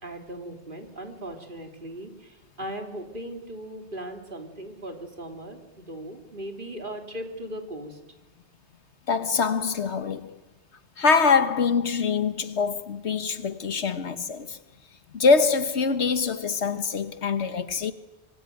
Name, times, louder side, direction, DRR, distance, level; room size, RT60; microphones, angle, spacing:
voice 1, 0.0-8.0, right 1 dB, 50° right, 3.2 m, -38 dB
voice 2, 9.1-10.3 11.0-14.6 15.1-17.9, left 5 dB, 80° left, 1.6 m, -24 dB
25.5 x 24.0 x 9.2 m
omnidirectional pair, 1.1 m